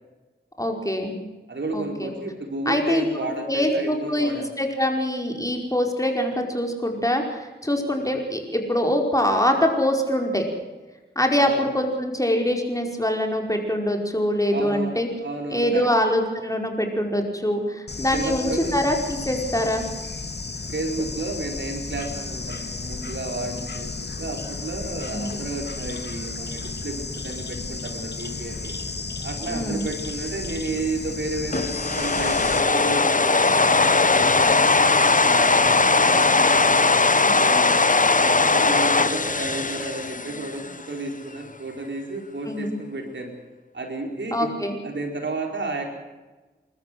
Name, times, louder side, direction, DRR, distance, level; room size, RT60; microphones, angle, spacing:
voice 1, 0.6-1.2 1.7-2.1 2.6-10.5 11.1-15.1 15.5-19.8 25.1-25.3 29.5-29.9 37.2-37.4 42.5-42.8 44.3-44.8, left 1 dB, 15° left, 2 dB, 5.1 m, -24 dB
voice 2, 1.5-4.5 7.9-8.1 11.4-11.6 14.5-15.9 18.1-18.8 20.7-28.8 29.2-36.8 37.1-43.3 43.7-44.5 44.8-45.9, right 2 dB, 70° right, 3 dB, 4.7 m, -32 dB
Bird / Insect, 17.9-32.6, left 3 dB, 60° left, 2.4 m, -33 dB
sound 1, 31.5-40.7, left 3 dB, 45° left, 1.2 m, -19 dB
28.5 x 14.0 x 7.9 m, 1.2 s
cardioid pair, 45°, 19 cm